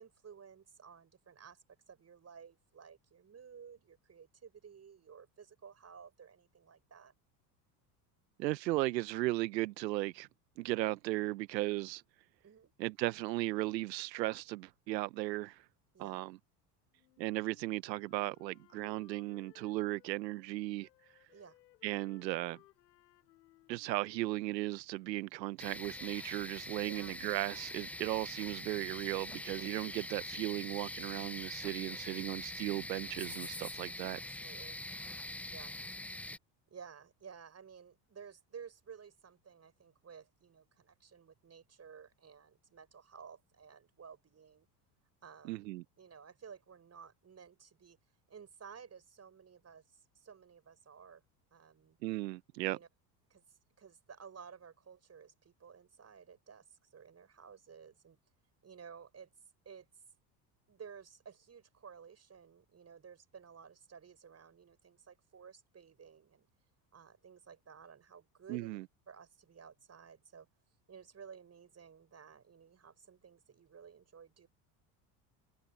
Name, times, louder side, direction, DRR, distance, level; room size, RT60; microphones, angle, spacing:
voice 1, 0.0-7.1 12.4-12.7 15.9-16.2 21.3-21.6 26.8-27.2 34.1-34.8 35.5-35.7 36.7-44.7 45.2-45.7 46.0-48.0 48.3-49.8 50.1-51.2 51.5-52.0 52.7-52.9 53.3-53.4 53.8-56.7 56.9-58.2 58.6-59.3 59.6-59.9 60.7-66.5 66.9-68.8 69.1-70.5 70.9-74.5, right 6 dB, 30° right, 6.6 m, -54 dB
voice 2, 8.4-10.3 10.6-12.0 12.8-15.6 16.0-16.4 17.2-20.9 21.8-22.6 23.7-34.2 45.5-45.8 52.0-52.8 68.5-68.8, right 18 dB, 85° right, 0.8 m, -36 dB
Wind instrument woodwind instrument, 17.0-20.5 20.8-24.8, left 17 dB, 80° left, 7.2 m, -65 dB
sound 1, 25.6-36.4, left 1 dB, 5° left, 0.4 m, -44 dB
hypercardioid pair, 80°, 49 cm